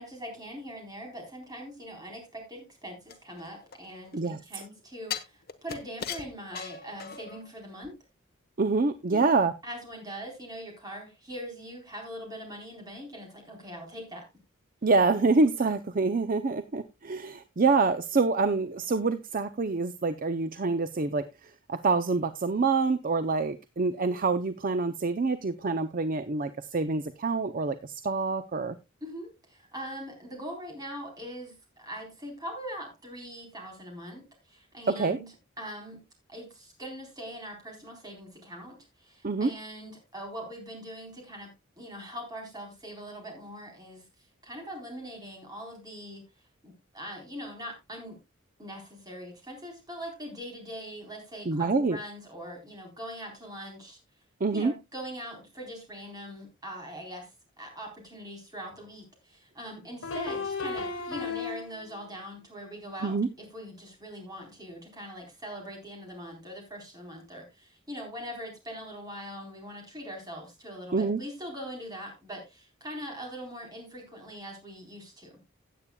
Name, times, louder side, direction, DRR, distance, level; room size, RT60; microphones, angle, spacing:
voice 1, 0.0-7.9 9.1-9.3 9.6-14.3 29.0-36.0 36.3-44.0 44.4-46.2 46.6-48.2 48.6-54.0 54.5-57.3 57.6-75.4, equal, 20° right, 4.0 m, -42 dB
sound 1, 3.1-4.3 5.1-7.5 7.8-7.9, left 7 dB, 50° left, 1.2 m, -39 dB
voice 2, 8.6-9.5 14.8-21.2 21.7-28.8 34.9-35.2 39.2-39.5 51.5-52.0 54.4-54.7 63.0-63.3 70.9-71.2, right 3 dB, 40° right, 0.5 m, -26 dB
sound 2, 58.7-58.8 60.0-62.0, left 4 dB, 70° left, 3.3 m, -34 dB
16.5 x 8.6 x 2.3 m
head